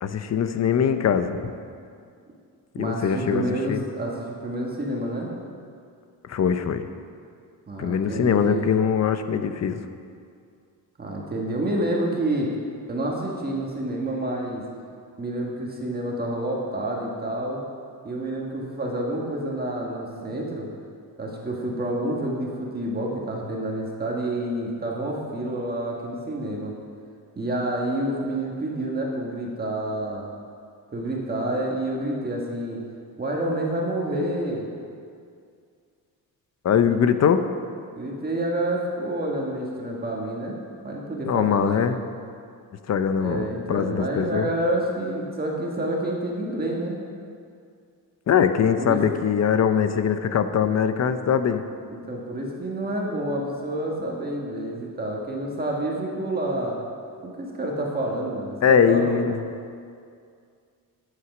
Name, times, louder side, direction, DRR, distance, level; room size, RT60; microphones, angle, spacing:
voice 1, 0.0-1.5 2.7-3.8 6.3-6.8 7.8-9.8 36.6-37.4 41.3-42.0 42.9-44.5 48.3-51.6 58.6-59.3, left 7 dB, 45° left, 10 dB, 0.6 m, -22 dB
voice 2, 2.8-5.3 7.7-8.7 11.0-12.5 12.9-14.6 15.2-17.6 18.0-20.7 21.2-26.7 27.3-30.3 30.9-32.8 33.2-34.7 36.9-37.0 38.0-40.6 40.8-41.9 43.2-47.0 48.8-49.0 51.9-56.8 57.2-59.2, right 1 dB, 25° right, -2 dB, 1.5 m, -28 dB
11.0 x 8.1 x 6.0 m, 2.3 s
wide cardioid pair, 155°, 36 cm